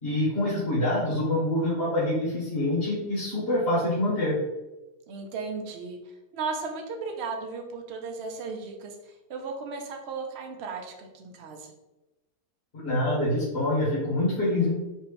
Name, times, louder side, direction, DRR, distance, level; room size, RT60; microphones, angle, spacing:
voice 1, 0.0-4.4 12.8-14.7, left 1 dB, 40° left, -10 dB, 1.8 m, -26 dB
voice 2, 5.1-6.0 6.3-9.0 9.3-11.7, right 4 dB, 55° right, 3 dB, 0.8 m, -35 dB
5.3 x 2.9 x 3.2 m, 1.0 s
omnidirectional pair, 1.7 m